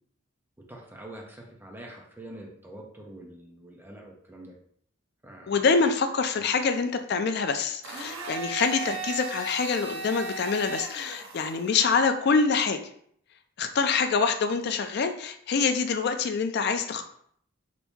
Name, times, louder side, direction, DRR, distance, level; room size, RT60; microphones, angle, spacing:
voice 1, 0.7-4.5 5.2-5.7 6.4-6.5, right 1 dB, 10° right, -1 dB, 0.6 m, -45 dB
voice 2, 5.5-12.8 13.6-17.0, left 5 dB, 55° left, 8 dB, 0.3 m, -25 dB
Domestic sounds home sounds, 7.8-11.9, right 4 dB, 70° right, 0.5 m, -36 dB
2.9 x 2.6 x 3.4 m, 0.65 s
head